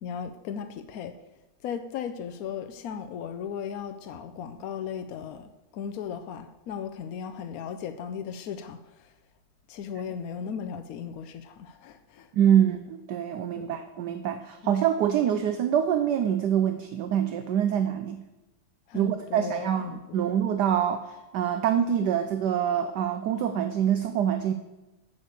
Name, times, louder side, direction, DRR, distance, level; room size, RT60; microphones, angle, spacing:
voice 1, 0.0-1.2 1.6-9.1 9.7-12.3 12.6-12.8 13.6-13.7 14.6-14.7 18.9-20.2, left 7 dB, 80° left, 8 dB, 0.8 m, -36 dB
voice 2, 12.3-18.2 18.9-24.5, right 9 dB, 70° right, 9 dB, 1.1 m, -25 dB
8.6 x 6.6 x 8.1 m, 1.0 s
omnidirectional pair, 2.2 m